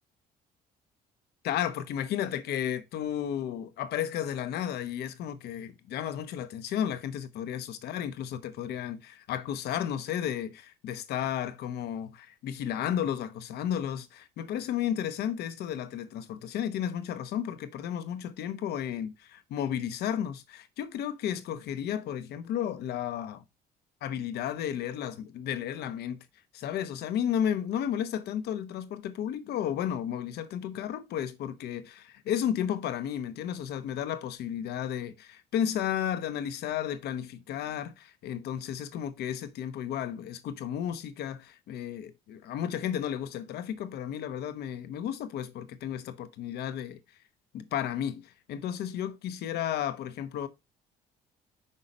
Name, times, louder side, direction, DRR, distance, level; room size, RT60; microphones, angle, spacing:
voice 1, 1.4-23.4 24.0-26.2 26.5-47.0 47.5-50.5, left 9 dB, 75° left, 0.9 m, -33 dB
5.6 x 5.5 x 5.0 m
cardioid pair, 110°, 17 cm